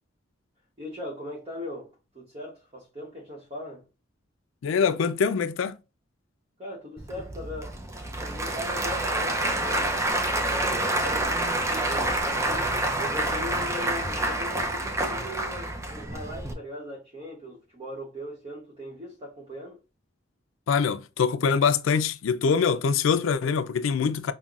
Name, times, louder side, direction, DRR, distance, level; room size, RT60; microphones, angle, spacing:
voice 1, 0.8-3.9 6.6-7.8 8.1-19.8, left 1 dB, 30° right, 0.9 m, -39 dB
voice 2, 4.6-5.8 20.7-24.3, left 6 dB, 80° left, 0.4 m, -24 dB
Applause / Crowd, 7.0-16.5, right 1 dB, 15° right, 0.5 m, -28 dB
5.4 x 2.1 x 2.4 m
head